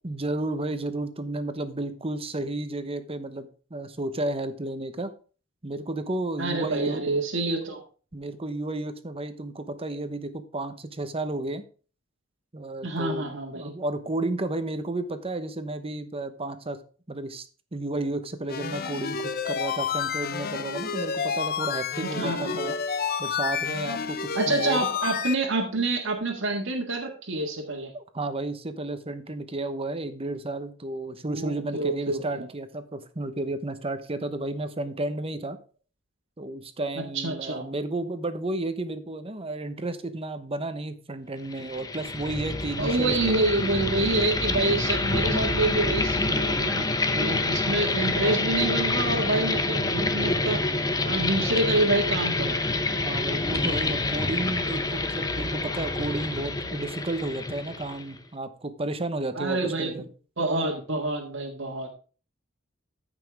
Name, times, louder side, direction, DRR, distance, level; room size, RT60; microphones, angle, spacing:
voice 1, 0.0-5.1 5.6-7.0 8.1-11.6 12.5-16.8 17.1-22.8 23.2-24.2 24.5-24.9 27.9-35.6 36.4-43.1 52.9-60.0, right 2 dB, 30° right, 10 dB, 1.0 m, -32 dB
voice 2, 6.4-7.8 12.8-13.7 22.0-22.7 24.3-27.9 31.3-32.5 37.1-37.6 42.8-50.6 51.1-52.6 59.4-60.0 60.4-61.9, right 2 dB, 65° right, 0 dB, 1.8 m, -27 dB
sound 1, 18.5-25.3, left 6 dB, 50° left, 0.7 m, -30 dB
sound 2, 41.5-58.2, left 2 dB, 20° left, 0.8 m, -27 dB
14.0 x 6.0 x 3.5 m, 0.37 s
head